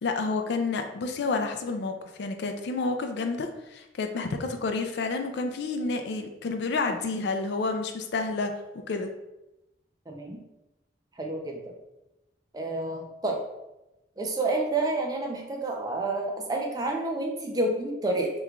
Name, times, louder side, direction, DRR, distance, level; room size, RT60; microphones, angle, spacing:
voice 1, 0.0-8.5 8.9-9.1, left 3 dB, 70° left, 6 dB, 0.4 m, -29 dB
voice 2, 10.1-10.4 11.2-11.7 12.5-13.4 14.2-18.3, right 2 dB, 20° right, 1 dB, 0.4 m, -29 dB
3.0 x 2.2 x 3.6 m, 0.95 s
head